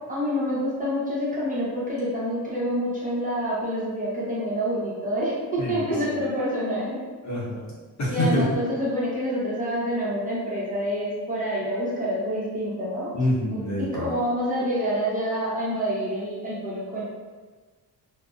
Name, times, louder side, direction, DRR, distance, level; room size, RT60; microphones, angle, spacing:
voice 1, 0.1-7.0 8.1-13.1 13.5-17.0, equal, 20° right, -7 dB, 0.8 m, -27 dB
voice 2, 5.6-5.9 7.2-7.7 8.0-8.4 13.1-14.1, left 1 dB, 45° left, -5 dB, 0.8 m, -26 dB
2.5 x 2.1 x 2.3 m, 1.4 s
cardioid pair, 95°, 39 cm